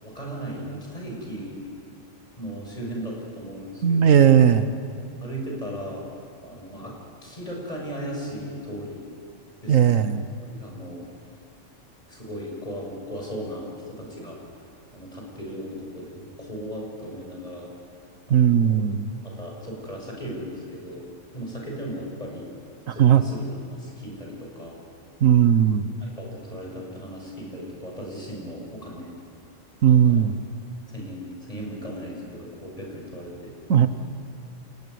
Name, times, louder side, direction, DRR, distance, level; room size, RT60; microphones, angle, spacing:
voice 1, 0.0-1.6 2.4-4.3 5.2-6.1 6.4-6.9 7.2-9.0 9.6-10.1 10.5-11.1 12.1-14.4 14.9-17.7 18.3-18.8 19.2-21.0 21.3-22.5 22.9-24.8 26.0-29.1 29.9-30.2 30.9-33.5, equal, 30° left, -1 dB, 6.5 m, -36 dB
voice 2, 3.8-4.7 9.7-10.2 18.3-19.1 22.9-23.2 25.2-25.8 29.8-30.3 33.7-33.9, right 9 dB, 80° right, 11 dB, 1.4 m, -17 dB
29.0 x 17.5 x 9.4 m, 2.4 s
omnidirectional pair, 1.4 m